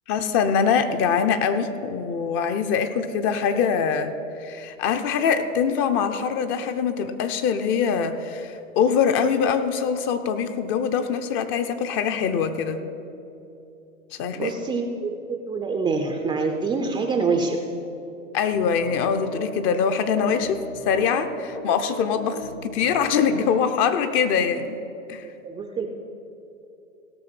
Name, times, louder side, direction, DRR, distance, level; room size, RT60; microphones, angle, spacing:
voice 1, 0.1-4.1 4.4-12.8 14.2-14.5 18.3-20.6 20.9-24.8 25.1-25.3, left 6 dB, 30° left, 9 dB, 0.7 m, -23 dB
voice 2, 14.3-17.6 25.4-25.9, right 4 dB, 10° right, 4 dB, 0.5 m, -26 dB
sound 1, 18.5-19.4 20.1-23.5, left 2 dB, 70° left, 2.7 m, -37 dB
16.5 x 6.4 x 5.9 m, 2.9 s
hypercardioid pair, 120°, 40 cm